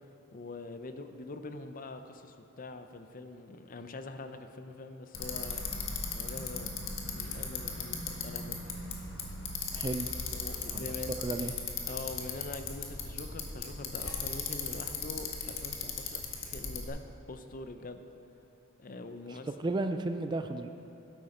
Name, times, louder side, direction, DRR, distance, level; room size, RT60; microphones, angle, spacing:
voice 1, 0.3-5.7 6.1-6.7 7.1-8.6 10.3-11.1 11.9-18.0 18.8-19.5, left 3 dB, 40° left, 8 dB, 0.6 m, -44 dB
Bicycle, 5.1-16.9, left 5 dB, 65° left, 1.5 m, -37 dB
voice 2, 9.7-10.1 10.7-10.8 11.2-11.5 19.6-20.7, right 2 dB, 20° right, 7 dB, 0.3 m, -33 dB
13.0 x 11.0 x 4.3 m, 2.8 s
head